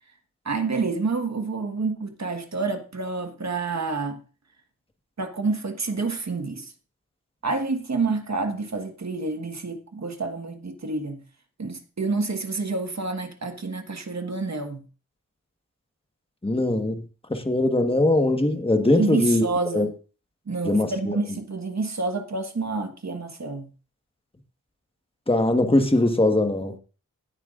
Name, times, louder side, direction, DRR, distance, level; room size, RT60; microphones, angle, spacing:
voice 1, 0.4-4.2 5.2-6.7 7.4-11.2 11.6-14.8 19.0-19.9 20.5-23.7, right 3 dB, 55° right, 1.4 m, -28 dB
voice 2, 16.4-17.0 17.3-19.5 19.7-19.9 20.6-21.2 25.3-26.7, left 2 dB, 15° left, 1.4 m, -21 dB
17.0 x 9.2 x 2.5 m
wide cardioid pair, 80°, 32 cm